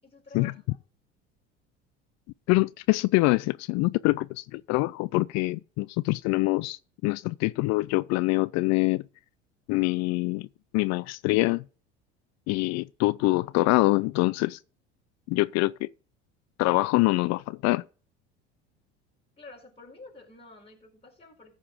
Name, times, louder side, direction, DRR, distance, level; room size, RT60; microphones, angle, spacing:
voice 1, 0.0-0.8 19.4-21.5, left 3 dB, 20° left, 4.5 m, -50 dB
voice 2, 2.5-9.0 9.7-10.5 10.7-11.6 12.5-14.6 15.3-15.9 16.6-17.8, left 21 dB, 60° left, 0.5 m, -25 dB
14.5 x 5.5 x 5.0 m
hypercardioid pair, 75°, 31 cm